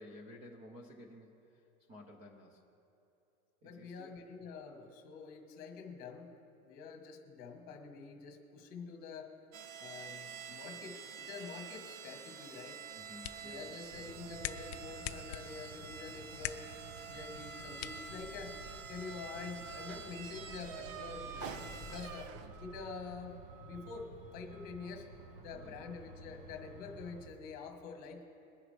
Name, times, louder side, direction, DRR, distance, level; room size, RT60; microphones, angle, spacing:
voice 1, 0.0-1.6 1.9-2.6 3.6-4.1 13.0-13.7 25.5-25.8, left 1 dB, 15° right, 0 dB, 0.5 m, -53 dB
voice 2, 3.6-6.3 6.6-9.3 9.8-12.8 13.4-16.7 17.1-18.6 18.9-25.1 25.4-28.2, left 5 dB, 20° left, 3 dB, 1.4 m, -47 dB
sound 1, 9.5-22.8, right 6 dB, 70° right, 1.0 m, -47 dB
sound 2, 12.8-18.8, left 13 dB, 50° left, 0.5 m, -47 dB
Truck, 13.9-27.3, right 2 dB, 45° right, 1.6 m, -52 dB
22.0 x 9.9 x 3.3 m, 2.8 s
supercardioid pair, 180°, 41 cm